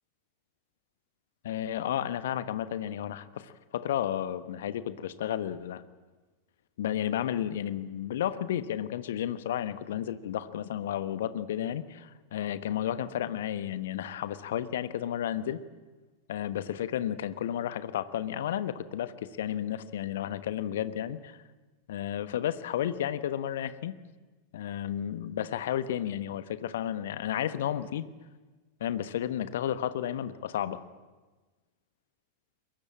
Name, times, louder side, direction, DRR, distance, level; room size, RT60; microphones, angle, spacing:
voice 1, 1.4-5.8 6.8-15.6 16.3-21.4 21.9-23.9 24.5-28.1 28.8-30.8, left 10 dB, 60° left, 14 dB, 1.3 m, -32 dB
22.5 x 21.0 x 8.7 m, 1.3 s
figure-of-eight pair, 90°, 0 cm